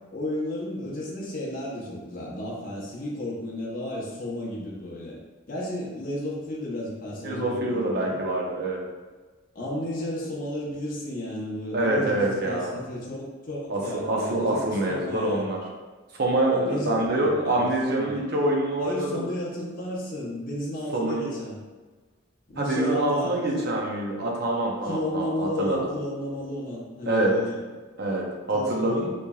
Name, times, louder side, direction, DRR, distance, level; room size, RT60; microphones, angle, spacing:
voice 1, 0.1-5.2 5.5-8.2 9.5-15.6 16.5-18.2 18.8-21.6 22.5-23.7 24.9-27.6 28.5-29.1, left 1 dB, 45° left, -5 dB, 0.8 m, -33 dB
voice 2, 7.2-8.8 11.7-12.8 13.7-15.6 16.1-19.3 20.9-21.3 22.6-25.9 27.0-27.3 28.0-29.1, right 1 dB, 55° right, -1 dB, 0.7 m, -25 dB
4.0 x 3.2 x 2.3 m, 1.3 s
head